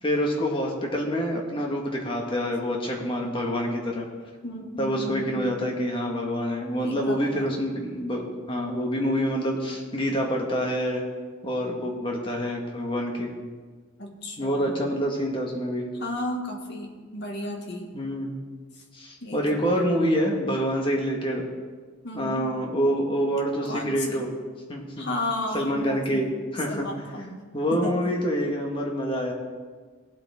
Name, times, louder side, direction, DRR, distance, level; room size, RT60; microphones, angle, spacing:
voice 1, 0.0-4.1 4.8-11.0 11.4-13.3 14.4-15.9 17.9-18.4 18.9-21.5 22.1-24.3 24.7-25.1 25.5-27.1 27.5-29.3, equal, 25° left, 0 dB, 1.8 m, -27 dB
voice 2, 4.4-5.4 6.8-7.5 14.0-14.8 16.0-17.9 19.2-19.9 22.0-22.5 23.7-24.3 25.0-26.2 26.7-27.4 27.7-27.9, left 1 dB, 60° left, 1 dB, 1.9 m, -34 dB
17.5 x 8.4 x 3.7 m, 1.5 s
head